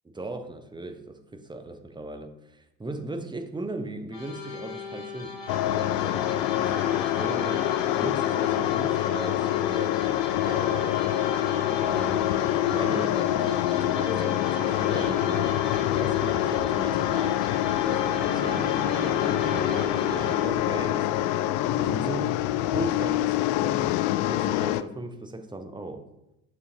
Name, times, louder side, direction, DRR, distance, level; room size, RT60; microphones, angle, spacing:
voice 1, 0.0-5.3 5.6-11.2 11.8-12.2 12.6-17.4 17.7-21.3 21.8-22.3 22.7-26.0, right 2 dB, 10° right, 7 dB, 0.9 m, -38 dB
sound 1, 4.1-20.4, left 4 dB, 80° left, 2.0 m, -35 dB
sound 2, 5.5-24.8, left 14 dB, 50° left, 0.5 m, -26 dB
9.0 x 6.8 x 2.9 m, 0.85 s
figure-of-eight pair, 55°, 49 cm